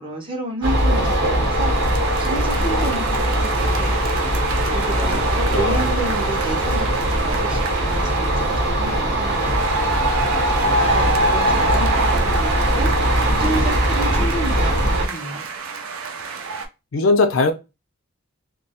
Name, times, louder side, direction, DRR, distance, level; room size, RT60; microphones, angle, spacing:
voice 1, 0.0-4.1 4.6-9.8 10.5-15.5, right 1 dB, 25° right, 0.6 m, -31 dB
sound 1, 0.6-15.1, right 1 dB, 60° right, 0.8 m, -20 dB
sound 2, 1.2-8.6 9.3-16.7, right 2 dB, 90° right, 0.5 m, -27 dB
voice 2, 5.5-5.9 16.9-17.5, left 3 dB, 70° left, 0.5 m, -18 dB
2.2 x 2.2 x 2.7 m
head